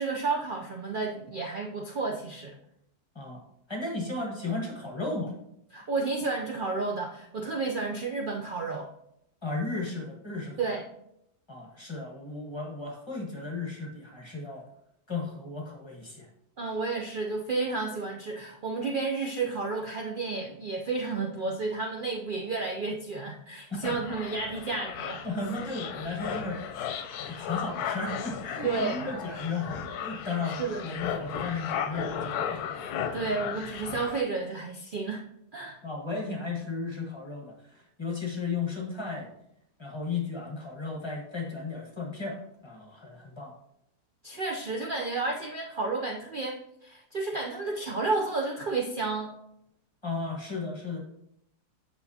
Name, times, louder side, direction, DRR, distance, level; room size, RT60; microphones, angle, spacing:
voice 1, 0.0-2.6 5.7-8.9 10.6-10.8 16.6-25.2 28.6-29.1 30.4-30.9 33.1-35.3 35.5-35.8 44.2-49.3, right 3 dB, 65° right, 0 dB, 0.5 m, -31 dB
voice 2, 3.7-5.3 9.4-10.7 11.5-14.6 15.1-16.3 23.7-23.8 25.2-26.9 27.3-32.6 35.6-39.3 39.8-43.5 50.0-51.0, left 3 dB, 20° left, -1 dB, 1.2 m, -35 dB
sound 1, 23.8-34.2, left 8 dB, 75° left, 1.1 m, -35 dB
7.9 x 6.3 x 2.8 m, 0.77 s
omnidirectional pair, 1.7 m